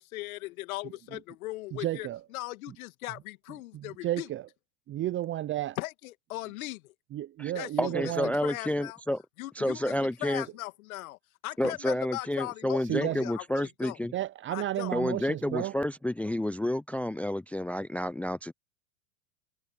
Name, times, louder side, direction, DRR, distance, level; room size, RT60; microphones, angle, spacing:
voice 1, 0.0-4.3 5.8-6.9 7.5-8.1 8.4-9.0 9.4-14.0 14.5-14.9, left 19 dB, 65° left, 2.3 m, -39 dB
voice 2, 1.8-2.2 3.7-4.4 4.9-5.8 7.1-8.4 12.8-13.3 14.1-15.7, right 13 dB, 25° right, 0.8 m, -32 dB
voice 3, 7.8-9.2 9.6-10.4 11.6-14.1 14.9-18.5, left 1 dB, 5° left, 0.5 m, -30 dB
hypercardioid pair, 105°, 45 cm